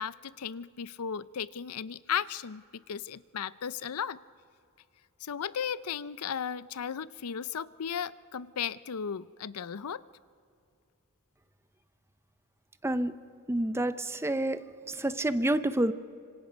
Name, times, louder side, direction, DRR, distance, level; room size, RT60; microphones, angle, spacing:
voice 1, 0.0-4.2 5.2-10.0, left 7 dB, 90° left, 18 dB, 0.6 m, -35 dB
voice 2, 12.8-13.2 13.5-15.9, right 1 dB, 10° right, 12 dB, 0.6 m, -29 dB
26.0 x 25.5 x 5.2 m, 2.4 s
head